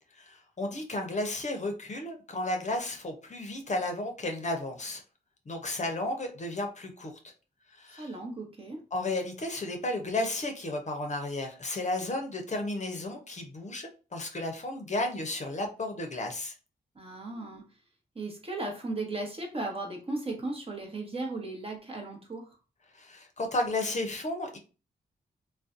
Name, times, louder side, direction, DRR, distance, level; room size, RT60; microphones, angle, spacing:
voice 1, 0.2-5.0 5.5-7.1 7.7-8.1 8.9-16.5 22.9-24.6, left 2 dB, 40° left, 0.7 m, -33 dB
voice 2, 8.0-8.8 16.9-17.7 18.1-22.6, right 2 dB, 30° right, 0.9 m, -36 dB
2.5 x 2.2 x 2.4 m
supercardioid pair, 40°, 19 cm